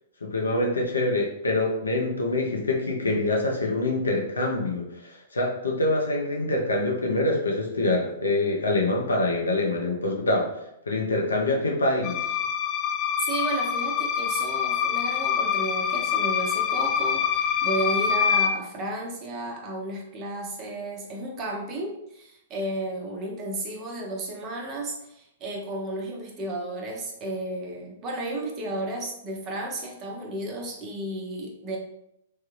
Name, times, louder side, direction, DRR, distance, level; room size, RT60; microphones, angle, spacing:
voice 1, 0.2-10.5 10.9-12.3, left 2 dB, 85° left, -1 dB, 0.7 m, -25 dB
sound 1, 12.0-18.5, left 8 dB, 30° left, 0.3 m, -25 dB
voice 2, 13.2-31.8, right 1 dB, 35° right, 0 dB, 0.8 m, -33 dB
3.2 x 2.3 x 3.1 m, 0.80 s
hypercardioid pair, 110°, 0 cm